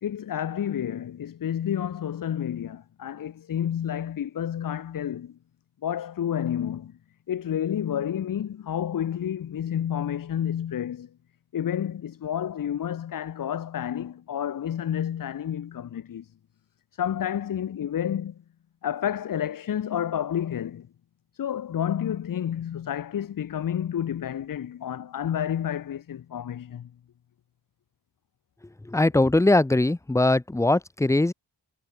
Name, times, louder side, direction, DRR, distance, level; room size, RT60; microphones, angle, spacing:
voice 1, 0.0-5.3 5.8-6.9 7.3-11.1 11.5-16.3 17.0-18.3 18.8-20.9 21.3-26.9, left 9 dB, 55° left, 0.7 m, -30 dB
voice 2, 28.8-31.3, left 2 dB, 10° left, 0.5 m, -21 dB
wide cardioid pair, 160°, 40 cm